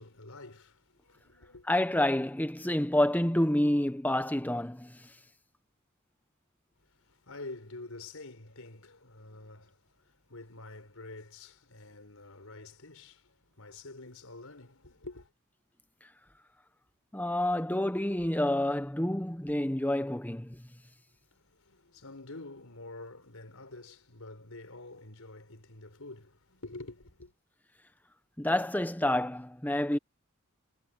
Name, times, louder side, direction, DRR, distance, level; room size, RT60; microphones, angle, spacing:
voice 1, 0.0-1.7 6.9-15.3 21.3-27.3, left 2 dB, 85° left, 4.6 m, -48 dB
voice 2, 1.7-5.1 17.1-20.7 28.4-30.0, left 1 dB, 10° left, 1.0 m, -28 dB
head